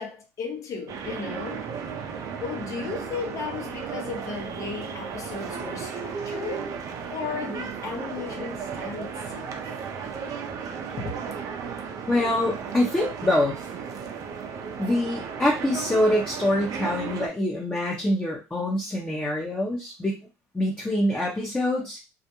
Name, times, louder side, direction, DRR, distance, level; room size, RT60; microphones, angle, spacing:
voice 1, 0.0-1.7 2.4-6.7 7.1-9.6, left 5 dB, 45° left, 0.8 m, -35 dB
sound 1, 0.9-17.3, right 6 dB, 50° right, 0.5 m, -34 dB
voice 2, 12.1-13.6 14.8-20.2 20.5-22.0, left 1 dB, 15° left, 0.8 m, -25 dB
2.4 x 2.1 x 2.9 m
supercardioid pair, 85°, 7 cm